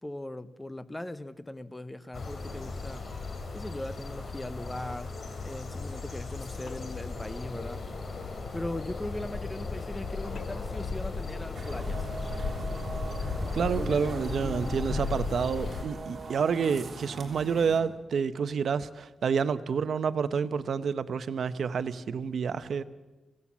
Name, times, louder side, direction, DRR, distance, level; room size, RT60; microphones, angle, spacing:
voice 1, 0.0-3.1 3.5-7.9 8.5-12.1, left 1 dB, 10° left, 0.7 m, -39 dB
sound 1, 2.1-15.8, left 4 dB, 50° left, 2.9 m, -36 dB
sound 2, 6.7-7.1 10.4-10.8 13.9-14.3, left 4 dB, 65° left, 2.4 m, -46 dB
sound 3, 11.6-17.8, right 2 dB, 40° right, 3.2 m, -40 dB
voice 2, 13.5-22.8, right 6 dB, 70° right, 0.8 m, -29 dB
24.0 x 16.5 x 7.3 m
wide cardioid pair, 140°, 0 cm